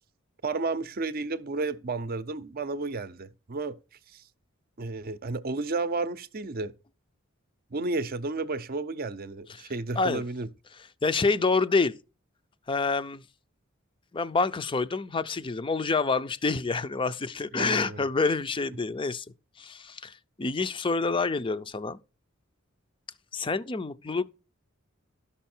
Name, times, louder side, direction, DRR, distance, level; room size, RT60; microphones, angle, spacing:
voice 1, 0.4-3.8 4.1-4.2 4.8-6.7 7.7-10.5 17.5-18.0, right 3 dB, 45° right, 0.6 m, -32 dB
voice 2, 9.6-10.2 11.0-11.9 12.7-13.2 14.1-19.3 19.6-22.0 23.3-24.3, left 4 dB, 25° left, 0.5 m, -27 dB
12.5 x 5.6 x 4.3 m
head